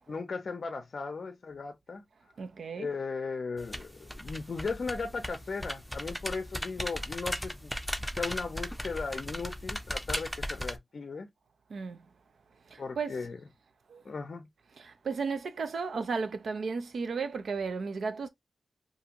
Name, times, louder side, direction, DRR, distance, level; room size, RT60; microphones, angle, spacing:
voice 1, 0.1-2.0 2.7-7.7 8.2-11.3 12.8-13.4 14.0-14.5, left 4 dB, 65° left, 0.5 m, -37 dB
voice 2, 2.4-2.9 11.7-12.0 13.0-13.1 15.1-18.3, right 5 dB, 75° right, 0.4 m, -33 dB
sound 1, 3.6-10.8, equal, ahead, 0.6 m, -37 dB
2.6 x 2.4 x 2.9 m
cardioid pair, 40°, 0 cm